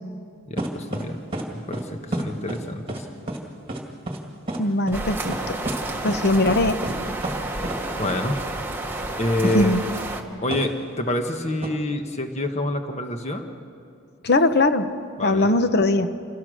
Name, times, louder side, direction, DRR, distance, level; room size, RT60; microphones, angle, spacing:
voice 1, 0.5-1.2 1.5-3.1 8.0-8.4 9.2-9.8 10.4-13.5 15.2-15.5, left 1 dB, 30° left, 6 dB, 1.3 m, -27 dB
sound 1, 0.6-1.0 1.3-1.5 1.7-1.8 2.1-2.6 2.9-3.0 3.3-3.4 3.7-3.8 4.1-4.2 4.5-4.6 4.9-5.0 5.2-5.4 5.7-5.8 6.1-6.2 6.5-6.6 6.8-7.0 7.2-7.4 7.6-7.8 8.0-8.1 9.4-9.6 10.5-10.7 11.6-11.7, right 1 dB, 25° right, 1.9 m, -29 dB
voice 2, 4.6-5.6 6.0-6.8 9.4-9.9 14.2-16.1, left 2 dB, 50° left, 10 dB, 0.9 m, -21 dB
sound 2, 4.9-10.2, right 2 dB, 10° right, 1.2 m, -30 dB
27.0 x 17.5 x 6.4 m, 2.4 s
head